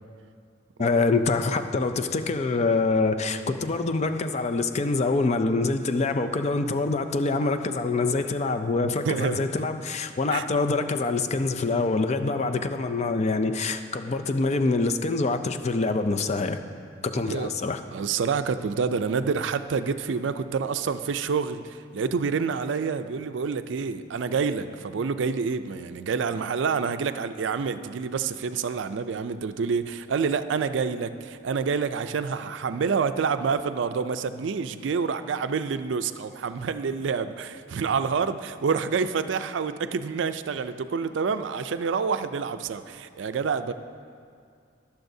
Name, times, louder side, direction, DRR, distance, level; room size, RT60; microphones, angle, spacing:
voice 1, 0.8-16.6 17.0-17.8, left 3 dB, 35° left, 0.4 m, -25 dB
voice 2, 8.8-9.7 10.3-10.4 17.1-17.5 17.9-43.7, right 5 dB, 70° right, 0.4 m, -28 dB
19.5 x 7.0 x 2.7 m
head